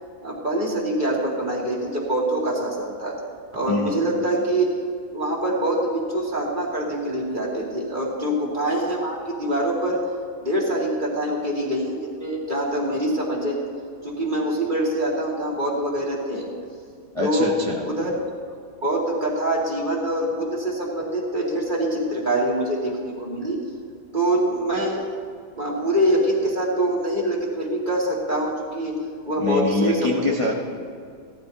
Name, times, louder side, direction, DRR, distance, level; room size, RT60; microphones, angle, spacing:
voice 1, 0.2-3.1 3.5-4.7 5.1-10.0 10.4-13.6 14.0-16.5 17.2-17.5 17.8-18.1 18.8-23.6 24.1-25.0 25.5-29.0 29.3-30.3, right 1 dB, 25° right, -4 dB, 2.3 m, -24 dB
voice 2, 3.7-4.0 17.1-17.8 29.4-30.5, left 2 dB, 30° left, -3 dB, 0.6 m, -24 dB
17.5 x 13.5 x 2.9 m, 2.2 s
omnidirectional pair, 2.2 m